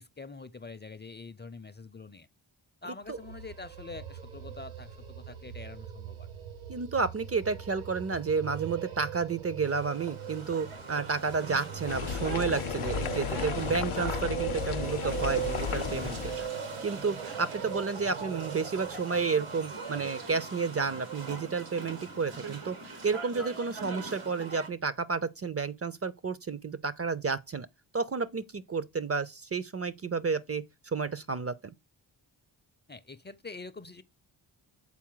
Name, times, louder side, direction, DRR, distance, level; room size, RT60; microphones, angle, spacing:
voice 1, 0.0-2.3 2.8-6.3 32.9-34.0, left 3 dB, 20° left, 0.5 m, -45 dB
sound 1, 3.1-20.1, right 9 dB, 70° right, 1.6 m, -41 dB
voice 2, 6.7-16.5 16.8-22.8 23.0-27.7 27.9-31.7, right 5 dB, 30° right, 0.6 m, -31 dB
sound 2, 9.6-24.7, right 4 dB, 85° right, 1.8 m, -42 dB
sound 3, 11.9-16.5, left 8 dB, 75° left, 0.7 m, -34 dB
7.4 x 4.1 x 3.9 m
supercardioid pair, 45°, 50 cm